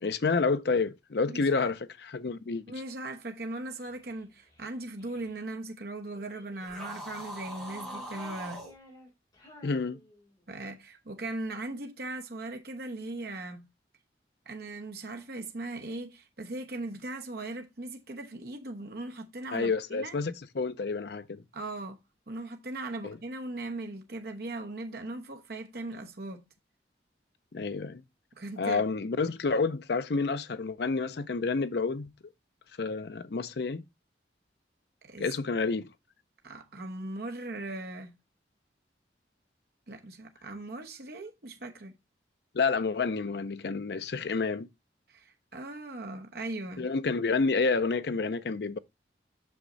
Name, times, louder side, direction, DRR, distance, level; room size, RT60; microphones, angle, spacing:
voice 1, 0.0-2.6 9.6-10.0 19.5-21.4 23.0-23.2 27.5-28.0 28.6-32.1 32.8-33.8 35.2-35.9 42.5-44.7 46.8-48.8, left 4 dB, 65° left, 0.5 m, -29 dB
voice 2, 1.3-1.7 2.7-8.6 10.5-13.7 14.5-20.2 21.5-22.0 22.3-26.4 28.4-28.8 35.0-35.3 36.4-38.1 39.9-41.9 45.1-46.9, right 2 dB, 60° right, 1.0 m, -39 dB
Child speech kid speaking, 3.7-5.3 6.1-7.0 7.4-10.6, equal, 25° left, 3.7 m, -55 dB
sound 1, 6.6-8.7, equal, ahead, 4.2 m, -41 dB
6.2 x 5.8 x 3.9 m
head